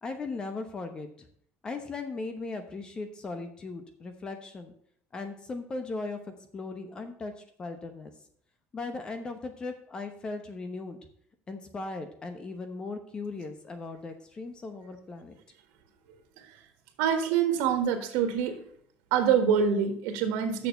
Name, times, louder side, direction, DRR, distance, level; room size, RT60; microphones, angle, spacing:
voice 1, 0.0-1.3 1.6-4.7 5.1-6.2 6.5-8.1 8.7-11.0 11.5-15.4, left 3 dB, 20° left, 8 dB, 0.9 m, -38 dB
voice 2, 17.0-18.6 19.1-20.7, right 7 dB, 90° right, 7 dB, 1.6 m, -25 dB
6.8 x 6.6 x 6.7 m, 0.63 s
cardioid pair, 165°, 4 cm